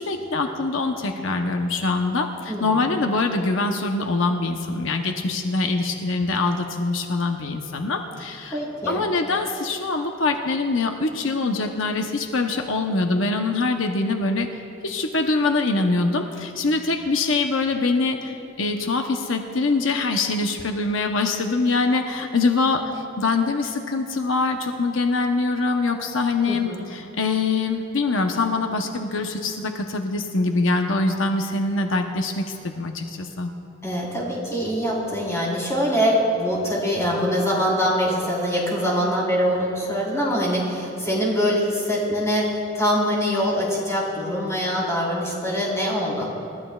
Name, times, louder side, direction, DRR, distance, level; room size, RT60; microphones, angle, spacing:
voice 1, 0.0-8.6 8.9-14.5 14.8-33.5, left 3 dB, 85° left, 4 dB, 0.8 m, -24 dB
voice 2, 2.5-2.8 8.5-9.0 26.5-26.8 33.8-46.3, equal, 15° left, -5 dB, 4.0 m, -23 dB
29.0 x 13.5 x 2.4 m, 2.8 s
head